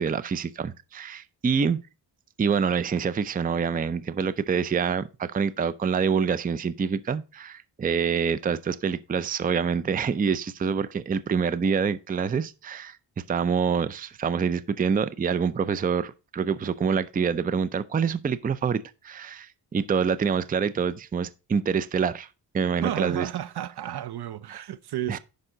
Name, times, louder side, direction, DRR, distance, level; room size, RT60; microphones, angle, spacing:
voice 1, 0.0-1.8 2.4-13.0 13.3-22.3 22.5-23.3 24.5-24.6 25.1-25.2, right 6 dB, 20° right, 0.4 m, -26 dB
voice 2, 22.8-25.2, right 11 dB, 65° right, 0.7 m, -32 dB
10.0 x 5.4 x 3.8 m
wide cardioid pair, 125°, 42 cm